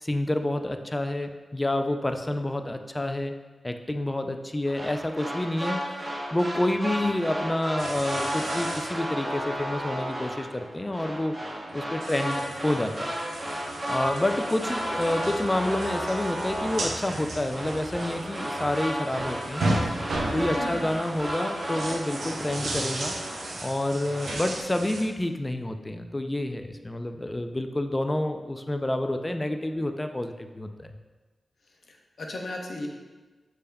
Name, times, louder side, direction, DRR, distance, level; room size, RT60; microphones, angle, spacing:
voice 1, 0.0-3.3 3.6-6.0 6.3-11.3 11.7-13.1 13.9-19.7 20.3-23.1 23.6-30.9, left 1 dB, 20° left, 7 dB, 0.3 m, -28 dB
sound 1, 4.7-23.8 24.1-24.6, equal, 25° right, 0.9 m, -33 dB
sound 2, 7.8-8.9 9.2-9.3 11.6-25.0, right 1 dB, 85° right, 0.6 m, -35 dB
voice 2, 20.3-20.8 31.9-32.9, left 1 dB, 70° left, 1 dB, 0.7 m, -36 dB
6.4 x 3.4 x 2.3 m, 1.3 s
cardioid pair, 55°, 0 cm